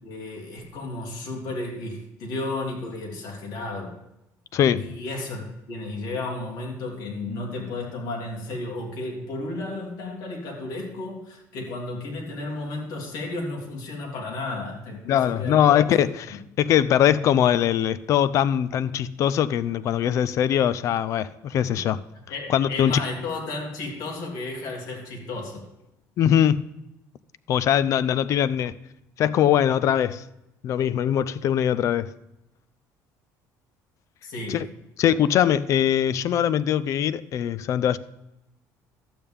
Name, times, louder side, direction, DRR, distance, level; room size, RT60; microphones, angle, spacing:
voice 1, 0.0-3.9 4.8-15.6 16.0-16.1 21.7-21.8 22.3-25.6 34.2-34.6, left 2 dB, 65° left, 3.0 m, -33 dB
voice 2, 4.5-4.9 15.1-22.0 22.5-23.0 26.2-26.7 27.5-28.7 29.2-30.2 30.6-32.1 34.5-34.7 35.0-38.0, left 10 dB, 50° left, 0.5 m, -22 dB
12.0 x 8.7 x 3.6 m
cardioid pair, 145°, 7 cm